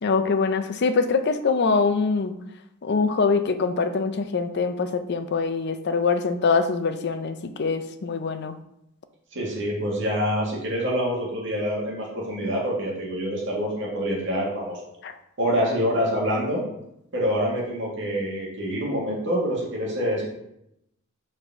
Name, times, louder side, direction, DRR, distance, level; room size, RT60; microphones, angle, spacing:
voice 1, 0.0-2.3 2.8-8.6 15.0-15.1, left 4 dB, 55° left, 10 dB, 0.5 m, -24 dB
voice 2, 9.3-14.8 15.4-16.6 17.1-20.3, equal, 60° right, -4 dB, 1.9 m, -26 dB
5.0 x 4.2 x 5.9 m, 0.80 s
head